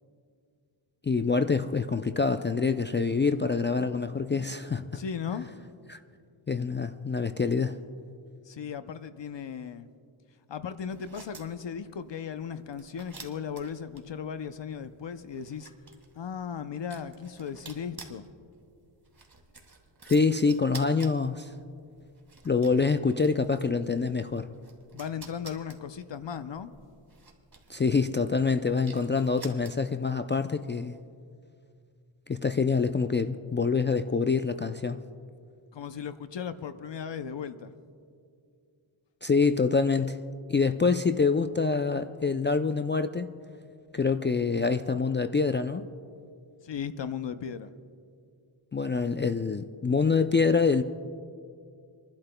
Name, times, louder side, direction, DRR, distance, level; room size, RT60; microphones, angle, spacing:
voice 1, 1.0-5.0 5.9-6.0 6.5-7.8 20.1-21.5 22.4-24.5 27.7-31.0 32.3-35.0 39.2-40.2 40.5-43.3 43.9-45.9 48.7-50.8, left 4 dB, 25° left, 9 dB, 0.4 m, -26 dB
voice 2, 4.9-5.5 8.5-9.9 10.5-15.7 16.2-18.3 24.9-26.7 35.7-37.7 46.6-47.7, left 7 dB, 60° left, 11 dB, 0.7 m, -36 dB
sound 1, 10.8-30.1, right 4 dB, 45° right, 2.1 m, -51 dB
29.5 x 11.5 x 2.2 m, 2.3 s
cardioid pair, 50°, 50 cm